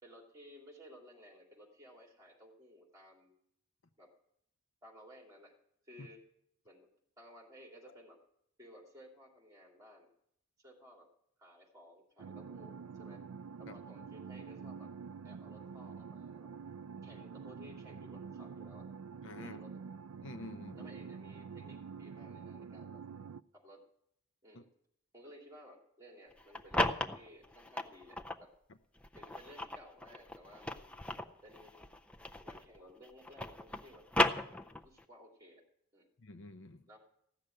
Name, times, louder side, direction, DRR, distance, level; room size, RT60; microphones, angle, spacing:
voice 1, 0.0-3.3 4.0-4.1 4.8-5.5 5.8-6.2 6.6-6.9 7.2-8.2 8.6-10.1 10.6-11.1 11.4-13.2 13.6-14.9 15.2-16.5 17.0-18.9 19.4-19.7 20.7-23.0 23.5-23.8 24.4-24.7 25.1-28.5 29.1-31.0 31.4-31.9 32.4-34.1 34.8-35.6 35.9-36.1 36.9-37.0, equal, 15° right, 0 dB, 2.8 m, -57 dB
sound 1, 12.2-23.4, right 6 dB, 85° right, 0.4 m, -47 dB
voice 2, 19.2-19.6 20.2-20.9 24.5-24.6 36.2-36.8, left 2 dB, 55° left, 10 dB, 0.6 m, -48 dB
sound 2, 26.3-28.4 29.0-32.8 33.0-35.0, left 1 dB, 5° left, 0.5 m, -35 dB
15.5 x 6.6 x 9.7 m, 0.75 s
head